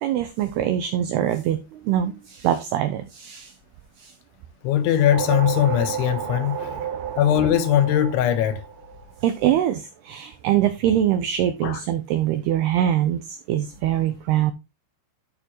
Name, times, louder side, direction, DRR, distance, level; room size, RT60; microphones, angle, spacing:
voice 1, 0.0-3.5 4.0-4.1 9.2-14.5, right 11 dB, 85° right, 2.3 m, -23 dB
voice 2, 4.6-6.9 7.2-8.6 11.6-11.8, left 11 dB, 80° left, 3.4 m, -20 dB
sound 1, 4.8-9.4, right 9 dB, 65° right, 2.2 m, -31 dB
11.0 x 6.8 x 3.0 m
omnidirectional pair, 5.5 m